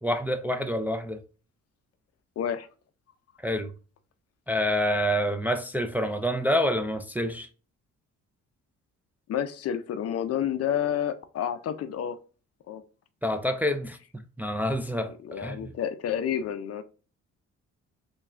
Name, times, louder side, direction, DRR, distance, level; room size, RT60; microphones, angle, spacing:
voice 1, 0.0-1.2 3.4-3.7 4.5-7.5 13.2-14.0 14.4-15.7, equal, 5° right, 0.3 m, -27 dB
voice 2, 2.4-2.7 9.3-12.2 12.7-12.8 15.2-16.8, left 9 dB, 55° left, 0.5 m, -29 dB
3.4 x 2.3 x 3.2 m
cardioid pair, 90°, 30 cm